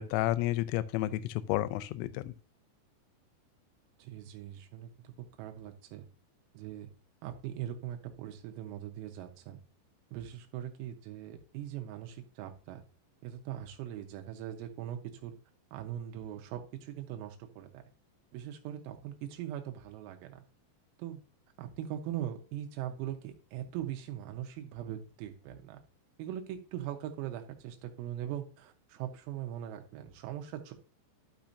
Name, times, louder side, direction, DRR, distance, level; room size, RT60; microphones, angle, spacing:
voice 1, 0.0-2.3, left 15 dB, 85° left, 15 dB, 3.1 m, -31 dB
voice 2, 4.0-5.1 5.4-6.1 6.6-6.9 7.2-9.6 10.1-12.8 13.2-15.4 15.7-17.8 18.3-20.4 21.0-21.2 21.6-25.8 26.2-30.7, right 11 dB, 85° right, 5 dB, 3.8 m, -41 dB
12.0 x 6.1 x 2.7 m, 0.35 s
omnidirectional pair, 6.0 m